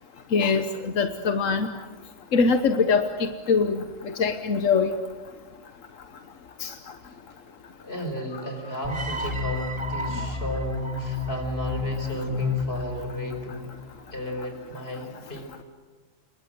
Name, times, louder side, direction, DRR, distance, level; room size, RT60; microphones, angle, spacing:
voice 1, 0.3-1.7 2.3-4.9 6.6-6.7, left 5 dB, 90° left, 8 dB, 1.5 m, -23 dB
voice 2, 7.8-13.7 14.1-15.6, equal, 50° left, 5 dB, 4.5 m, -35 dB
sound 1, 8.8-13.9, left 2 dB, 25° right, 1.5 m, -30 dB
28.0 x 22.0 x 7.8 m, 1.4 s
omnidirectional pair, 1.3 m